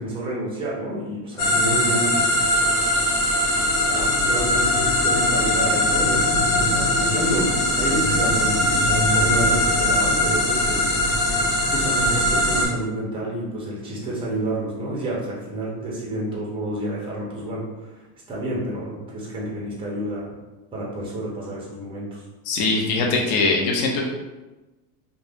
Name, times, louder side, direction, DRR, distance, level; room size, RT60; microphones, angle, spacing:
voice 1, 0.0-2.7 3.8-10.9 11.7-20.3 20.7-22.2, right 1 dB, 10° right, -4 dB, 0.4 m, -29 dB
sound 1, 1.4-12.7, left 1 dB, 80° left, 1.1 m, -20 dB
voice 2, 22.5-24.0, left 3 dB, 50° left, -2 dB, 0.7 m, -21 dB
2.4 x 2.1 x 3.3 m, 1.1 s
supercardioid pair, 140°, 50 cm